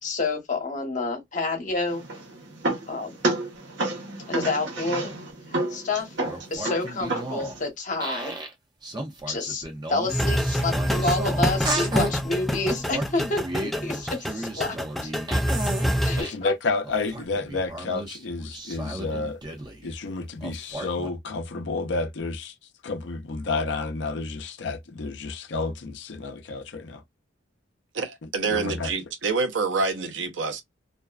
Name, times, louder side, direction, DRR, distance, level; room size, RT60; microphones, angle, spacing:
voice 1, 0.0-2.0 2.9-3.1 4.3-5.1 5.5-6.1 6.5-8.4 9.3-9.6 9.9-14.8 15.0-15.1 16.0-16.5, left 3 dB, 45° left, 1.1 m, -29 dB
sound 1, 1.9-7.7, right 2 dB, 70° right, 1.1 m, -31 dB
sound 2, 6.0-7.6 8.0-8.5 8.8-12.1 12.7-16.4 16.8-19.9 20.4-21.1, right 1 dB, 25° right, 0.7 m, -34 dB
sound 3, 10.1-16.2, equal, ahead, 0.3 m, -26 dB
voice 2, 16.2-19.4 19.8-22.5 22.8-27.0 28.2-28.9, left 3 dB, 70° left, 0.6 m, -30 dB
voice 3, 27.9-30.6, right 4 dB, 85° right, 0.7 m, -27 dB
2.5 x 2.2 x 2.3 m
head